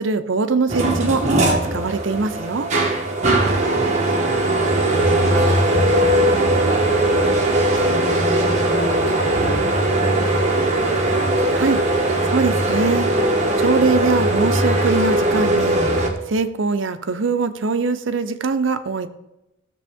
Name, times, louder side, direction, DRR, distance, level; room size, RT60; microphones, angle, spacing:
voice 1, 0.0-2.7 11.5-11.8 12.3-13.1 13.6-15.8 16.3-19.1, right 4 dB, 70° right, 10 dB, 0.7 m, -22 dB
sound 1, 0.7-16.1, right 1 dB, 35° right, 1.4 m, -19 dB
voice 2, 3.6-4.4 5.0-10.8, left 1 dB, 85° left, -4 dB, 3.1 m, -33 dB
15.5 x 6.9 x 3.6 m, 0.94 s
head